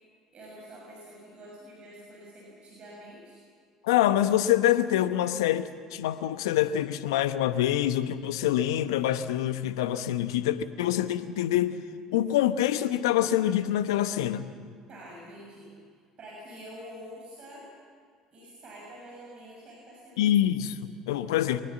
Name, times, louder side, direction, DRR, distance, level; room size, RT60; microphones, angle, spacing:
voice 1, 0.3-3.4 14.9-15.7 16.2-17.7 18.3-20.4, equal, 45° right, -3 dB, 6.7 m, -47 dB
voice 2, 3.8-11.8 12.1-14.5 20.2-21.6, left 12 dB, 75° left, 12 dB, 1.0 m, -25 dB
23.5 x 20.0 x 7.3 m, 2.1 s
hypercardioid pair, 60°, 3 cm